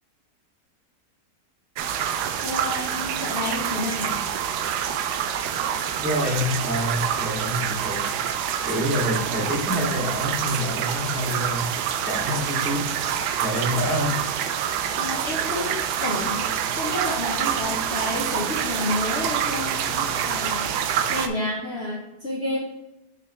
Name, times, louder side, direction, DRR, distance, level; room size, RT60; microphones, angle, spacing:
sound 1, 1.8-21.3, right 8 dB, 90° right, 1.2 m, -26 dB
voice 1, 2.4-4.2 15.0-16.4 16.8-20.7 21.1-22.6, left 1 dB, 45° left, -4 dB, 1.2 m, -30 dB
voice 2, 6.0-8.1 8.6-12.9 13.4-14.3, equal, 5° right, -8 dB, 2.4 m, -27 dB
6.5 x 5.5 x 3.2 m, 0.95 s
omnidirectional pair, 1.7 m